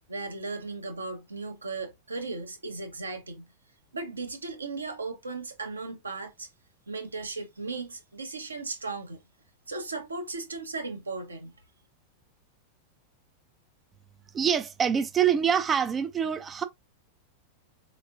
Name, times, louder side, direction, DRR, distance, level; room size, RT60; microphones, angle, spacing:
voice 1, 0.1-3.5 3.9-6.5 6.9-9.2 9.7-11.5, right 3 dB, 75° right, 0.9 m, -36 dB
voice 2, 14.3-16.6, right 8 dB, 20° right, 0.4 m, -25 dB
4.3 x 3.1 x 2.4 m
figure-of-eight pair, 90°, 0 cm